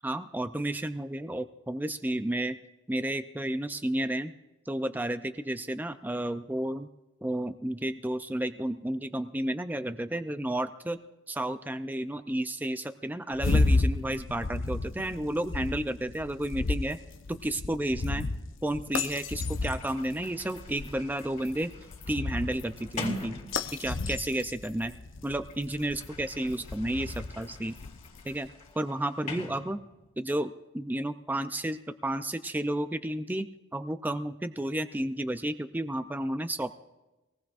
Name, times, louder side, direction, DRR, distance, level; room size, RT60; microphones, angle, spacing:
voice 1, 0.0-2.6 2.9-4.3 4.7-6.9 7.2-11.0 11.3-17.0 17.3-18.2 18.6-21.7 22.1-23.4 23.8-24.9 25.2-27.8 28.2-28.5 28.8-29.8 30.2-36.7, right 1 dB, 10° right, 9 dB, 0.4 m, -32 dB
sound 1, 13.3-28.5, left 3 dB, 70° left, 0.7 m, -33 dB
Sliding door, 19.3-24.3 25.3-30.2, left 2 dB, 35° left, 3.1 m, -44 dB
23.5 x 19.0 x 2.5 m, 1.0 s
head